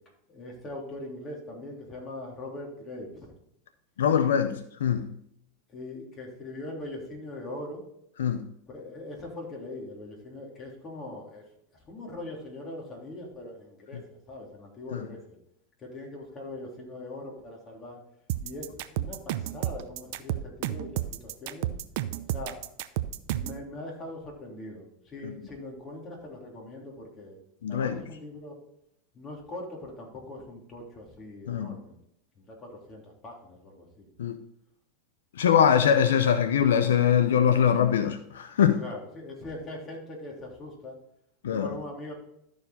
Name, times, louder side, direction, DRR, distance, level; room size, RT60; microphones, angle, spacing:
voice 1, 0.3-3.3 5.7-7.8 8.7-11.4 11.9-14.0 14.3-15.4 15.8-18.0 18.4-21.7 22.3-22.6 23.2-27.4 27.7-28.5 29.1-32.0 32.4-34.1 38.8-41.0 41.5-42.1, left 1 dB, 30° left, 3.3 m, -41 dB
voice 2, 4.0-5.1 8.2-8.4 14.9-15.0 25.2-25.3 27.6-28.0 31.5-31.8 34.2-34.4 35.4-38.8 41.4-41.7, left 8 dB, 90° left, 0.6 m, -23 dB
sound 1, 18.3-23.6, right 13 dB, 65° right, 0.6 m, -31 dB
12.5 x 4.8 x 4.1 m
hypercardioid pair, 115°, 0 cm